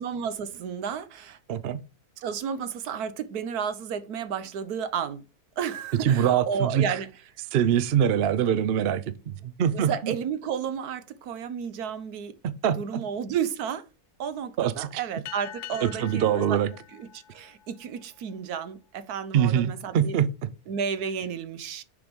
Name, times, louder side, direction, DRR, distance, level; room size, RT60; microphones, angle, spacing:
voice 1, 0.0-1.4 2.2-5.2 5.6-7.1 9.7-12.3 12.8-13.8 14.2-16.6 16.9-20.2 20.7-21.8, right 7 dB, 85° right, 1.3 m, -32 dB
voice 2, 1.5-1.8 6.0-7.0 7.5-10.1 12.4-13.0 14.6-15.0 15.8-16.7 19.3-20.3, right 9 dB, 60° right, 0.6 m, -24 dB
sound 1, 15.2-18.2, left 12 dB, 65° left, 0.8 m, -44 dB
6.9 x 5.0 x 5.2 m
omnidirectional pair, 1.6 m